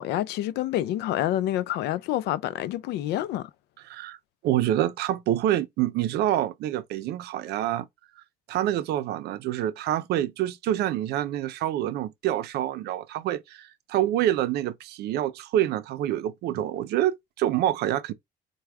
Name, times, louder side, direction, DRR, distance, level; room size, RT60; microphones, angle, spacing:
voice 1, 0.0-3.5, left 13 dB, 80° left, 0.4 m, -28 dB
voice 2, 3.9-4.2 4.4-7.9 8.5-18.1, right 12 dB, 75° right, 0.5 m, -27 dB
4.6 x 2.2 x 3.4 m
cardioid pair, 110°, 17 cm